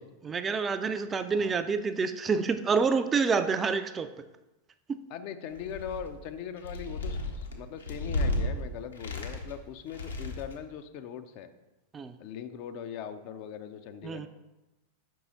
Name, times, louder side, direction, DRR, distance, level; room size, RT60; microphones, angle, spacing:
voice 1, 0.2-4.1 4.9-5.0 11.9-12.1 14.0-14.3, right 5 dB, 20° right, 10 dB, 0.3 m, -28 dB
voice 2, 5.1-11.5 12.2-14.3, left 8 dB, 45° left, 9 dB, 0.4 m, -40 dB
sound 1, 5.5-6.2 6.6-8.5 8.9-9.6 9.9-10.6, left 1 dB, 70° left, 0.9 m, -33 dB
5.3 x 4.6 x 4.0 m, 1.0 s
figure-of-eight pair, 90°, 0 cm